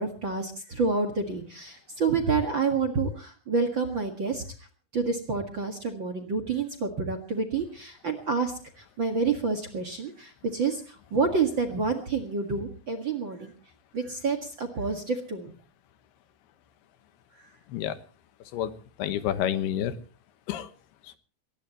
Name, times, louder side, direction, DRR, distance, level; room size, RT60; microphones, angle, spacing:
voice 1, 0.0-4.4 4.9-8.5 9.0-13.5 13.9-15.5, right 4 dB, 45° right, 8 dB, 1.7 m, -28 dB
voice 2, 19.0-20.0 20.5-20.7 21.0-21.2, left 10 dB, 90° left, 11 dB, 3.2 m, -29 dB
22.0 x 19.5 x 3.0 m, 0.41 s
omnidirectional pair, 4.6 m